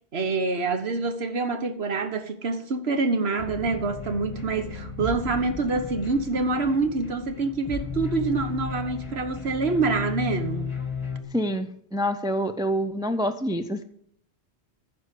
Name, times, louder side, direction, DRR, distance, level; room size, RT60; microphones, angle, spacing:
voice 1, 0.1-10.7, right 3 dB, 70° right, 1.4 m, -26 dB
sound 1, 3.4-11.2, left 5 dB, 25° left, 1.7 m, -35 dB
voice 2, 11.3-13.8, equal, 5° right, 0.3 m, -27 dB
14.5 x 5.0 x 8.3 m
omnidirectional pair, 1.1 m